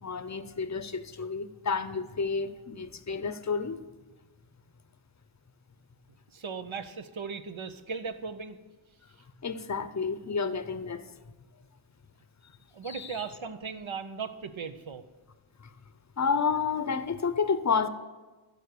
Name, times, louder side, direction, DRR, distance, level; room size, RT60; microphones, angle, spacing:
voice 1, 0.0-3.8 9.4-11.1 12.8-13.2 15.6-15.7 16.2-17.9, left 5 dB, 35° left, 12 dB, 0.6 m, -30 dB
voice 2, 6.3-8.6 12.7-15.0, right 5 dB, 80° right, 10 dB, 0.8 m, -37 dB
12.5 x 5.1 x 6.7 m, 1.2 s
wide cardioid pair, 40°, 47 cm